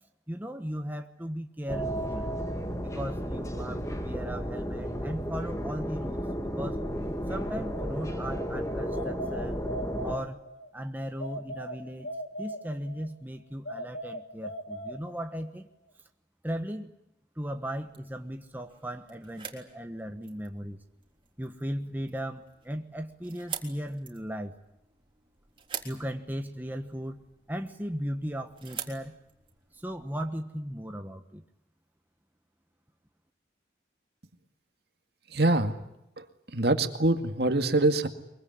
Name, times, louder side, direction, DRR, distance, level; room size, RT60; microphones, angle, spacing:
voice 1, 0.3-2.3 2.8-6.8 7.3-9.6 10.0-10.4 10.7-12.1 12.4-15.7 16.4-16.9 17.4-20.8 21.4-24.5 25.8-27.2 27.5-29.2 29.7-31.4, equal, 10° right, 5 dB, 1.2 m, -37 dB
sound 1, 1.7-10.2, equal, 15° left, 2.2 m, -33 dB
sound 2, 8.9-10.7 11.2-13.1 13.7-15.5, right 1 dB, 80° left, 2.1 m, -39 dB
sound 3, 17.4-30.2, right 8 dB, 30° right, 3.6 m, -46 dB
voice 2, 35.3-35.7 36.5-38.1, right 2 dB, 60° right, 7 dB, 2.1 m, -24 dB
24.0 x 23.0 x 9.5 m, 0.86 s
head